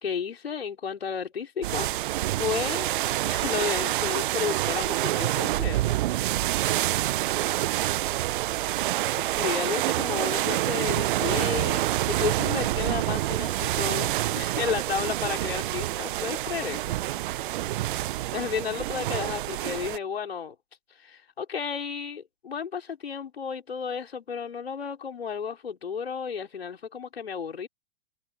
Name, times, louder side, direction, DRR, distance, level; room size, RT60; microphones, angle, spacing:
voice 1, 0.0-1.9 2.2-2.9 3.3-6.0 9.4-16.9 18.3-20.5 21.0-27.7, left 6 dB, 85° left, 4.8 m, -32 dB
sound 1, 1.6-20.0, right 15 dB, 55° right, 0.8 m, -27 dB
voice 2, 17.3-18.1, right 14 dB, 30° right, 7.8 m, -50 dB
hypercardioid pair, 110°, 30 cm